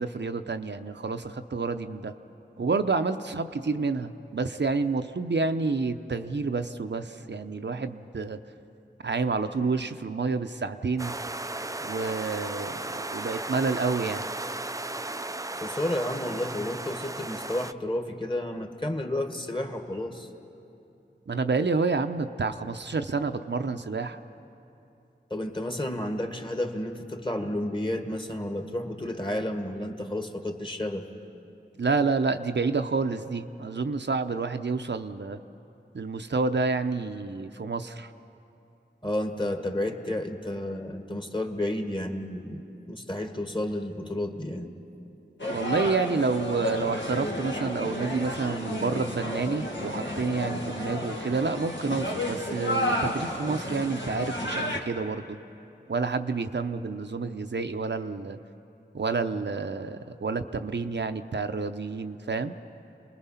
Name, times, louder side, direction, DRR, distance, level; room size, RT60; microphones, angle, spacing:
voice 1, 0.0-2.1 2.6-8.4 9.0-11.1 11.9-12.8 13.1-14.3 21.3-24.2 31.8-35.4 35.9-38.1 45.5-55.4 55.9-58.4 58.9-62.6, right 4 dB, 70° right, 7 dB, 0.7 m, -29 dB
sound 1, 11.0-17.7, right 2 dB, 20° right, 0.4 m, -35 dB
voice 2, 15.5-20.3 25.3-31.1 39.0-44.7, left 1 dB, 25° left, 5 dB, 1.7 m, -31 dB
sound 2, 45.4-54.8, left 1 dB, 80° left, 1.8 m, -32 dB
27.5 x 20.5 x 5.7 m, 2.8 s
wide cardioid pair, 50°, 19 cm